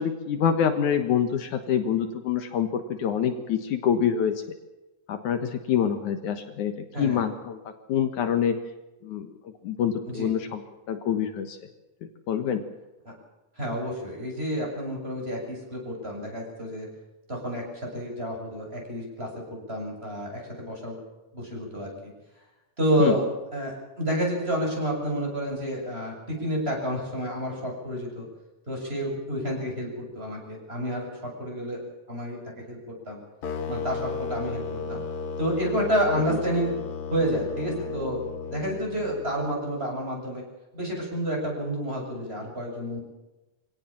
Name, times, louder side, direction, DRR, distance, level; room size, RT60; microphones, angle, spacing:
voice 1, 0.0-4.3 5.1-7.6 7.9-8.6 9.0-9.3 9.6-10.6 10.9-11.6 12.3-12.6 23.0-23.1 36.3-36.4, left 8 dB, 70° left, 7 dB, 2.7 m, -26 dB
voice 2, 13.6-16.9 17.3-17.6 17.9-19.3 19.7-21.0 21.3-22.1 22.8-26.1 26.4-28.3 28.7-31.1 31.4-31.8 32.1-32.4 32.7-32.8 33.1-33.2 33.7-35.0 35.4-36.7 37.1-38.2 38.5-40.4 40.7-43.0, equal, 15° right, -1 dB, 7.7 m, -29 dB
sound 1, 33.4-39.5, left 5 dB, 55° left, 2.1 m, -34 dB
25.0 x 17.5 x 7.4 m, 1.0 s
omnidirectional pair, 3.7 m